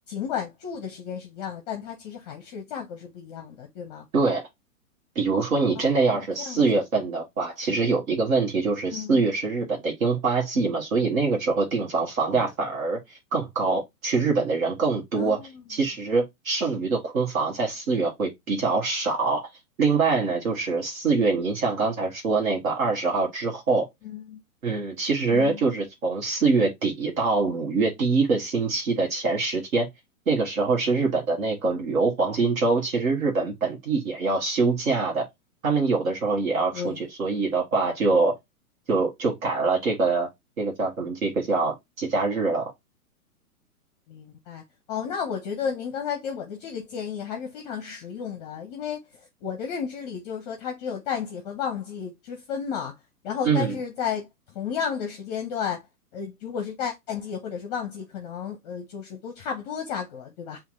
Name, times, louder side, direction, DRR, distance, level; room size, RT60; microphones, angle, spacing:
voice 1, 0.1-4.1 5.8-6.8 8.9-9.3 12.3-12.5 15.2-15.6 24.0-24.4 25.3-25.6 36.7-37.1 44.1-53.0 53.2-55.8 56.1-60.6, left 7 dB, 30° left, 0.6 m, -33 dB
voice 2, 4.1-4.5 5.1-15.4 15.7-19.5 19.8-23.9 24.6-29.9 30.3-35.2 35.6-38.3 38.9-40.3 40.6-42.7 53.4-53.7, right 4 dB, 65° right, 1.3 m, -24 dB
7.0 x 2.5 x 2.5 m
figure-of-eight pair, 115°, 44 cm